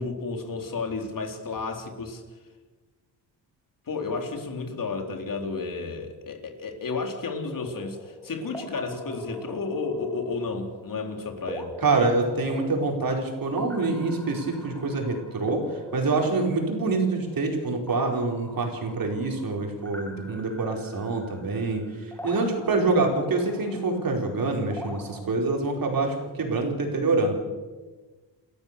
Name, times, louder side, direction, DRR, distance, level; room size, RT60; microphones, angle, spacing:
voice 1, 0.0-2.2 3.9-11.7, left 4 dB, 50° left, 4 dB, 3.8 m, -32 dB
sound 1, 7.5-25.2, equal, 5° left, 3.0 m, -43 dB
voice 2, 11.8-27.3, right 3 dB, 50° right, 2 dB, 4.9 m, -26 dB
29.5 x 13.5 x 6.9 m, 1.3 s
cardioid pair, 110°, 43 cm